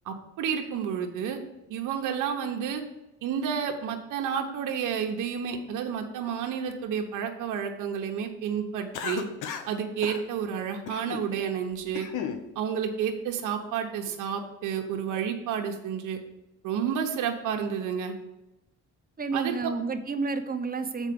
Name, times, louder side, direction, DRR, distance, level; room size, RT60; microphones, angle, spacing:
voice 1, 0.0-1.4 1.7-2.8 3.2-9.2 9.7-12.1 12.5-16.2 16.6-18.1 19.3-19.5, right 7 dB, 85° right, 3 dB, 1.1 m, -30 dB
Cough, 8.9-9.7 10.0-10.2 10.9-11.3 11.7-12.4, left 8 dB, 90° left, 0.9 m, -34 dB
voice 2, 19.2-21.1, right 4 dB, 30° right, 8 dB, 0.9 m, -30 dB
7.3 x 4.6 x 6.9 m, 0.94 s
cardioid pair, 90°, 30 cm